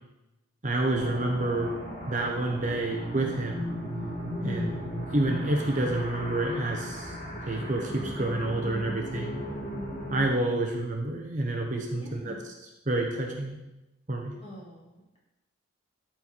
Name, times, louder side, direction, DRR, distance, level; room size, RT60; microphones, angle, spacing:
voice 1, 0.6-1.7 2.1-3.7 4.4-4.7 5.1-7.2 7.4-9.3 10.1-12.5 12.9-13.5 14.1-14.3, right 2 dB, 35° right, 1 dB, 1.0 m, -28 dB
sound 1, 0.9-10.3, equal, 45° left, 2.2 m, -36 dB
voice 2, 4.4-4.9 12.0-12.4 14.4-15.2, right 1 dB, 30° left, -4 dB, 2.4 m, -42 dB
13.5 x 4.6 x 4.2 m, 0.94 s
head